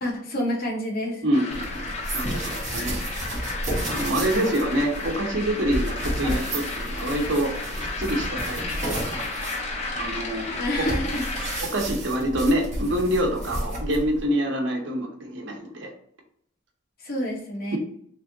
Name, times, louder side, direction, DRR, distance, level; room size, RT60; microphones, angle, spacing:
voice 1, 0.0-1.2 10.6-11.2 17.0-17.8, left 1 dB, 55° left, 0 dB, 1.1 m, -28 dB
voice 2, 1.2-1.8 2.1-3.0 3.9-7.5 8.0-9.3 9.5-9.6 9.9-10.6 11.6-15.9 17.7-17.8, right 1 dB, 70° right, 1 dB, 0.9 m, -26 dB
sound 1, 1.3-11.6, left 3 dB, 35° left, 0.7 m, -33 dB
sound 2, 1.5-14.3, right 1 dB, 40° right, 1.2 m, -32 dB
3.4 x 3.3 x 2.7 m, 0.67 s
head